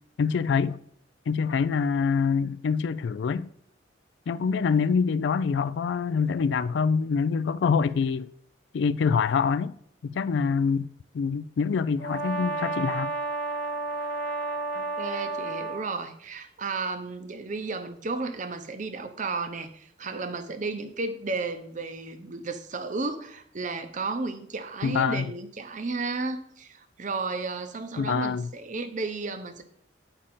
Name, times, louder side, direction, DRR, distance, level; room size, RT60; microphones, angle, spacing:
voice 1, 0.2-0.8 1.3-3.5 4.3-8.3 8.7-9.7 10.0-10.9 11.1-13.1 24.8-25.3 28.0-28.5, left 5 dB, 65° left, 0.3 m, -25 dB
voice 2, 4.6-5.0 14.7-29.6, right 3 dB, 40° right, 0.7 m, -33 dB
Brass instrument, 12.0-15.9, right 3 dB, 50° left, 0.8 m, -31 dB
8.8 x 5.0 x 4.2 m
head